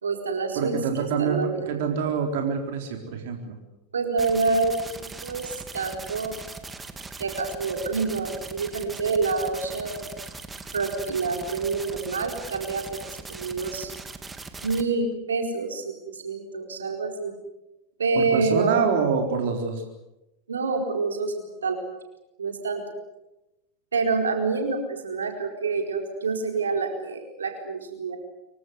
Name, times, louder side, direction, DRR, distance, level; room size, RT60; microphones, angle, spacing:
voice 1, 0.0-0.7 1.2-1.8 3.9-6.4 7.2-10.1 10.7-13.9 14.6-17.3 18.0-18.9 20.5-21.8 22.4-22.8 23.9-28.2, right 4 dB, 85° right, 4 dB, 4.5 m, -27 dB
voice 2, 0.6-1.4 1.7-3.6 18.1-19.8, right 6 dB, 65° right, 3 dB, 4.0 m, -26 dB
sound 1, 4.2-14.8, right 3 dB, 15° right, 2.9 m, -40 dB
26.0 x 24.0 x 8.2 m, 0.98 s
hypercardioid pair, 90°, 0 cm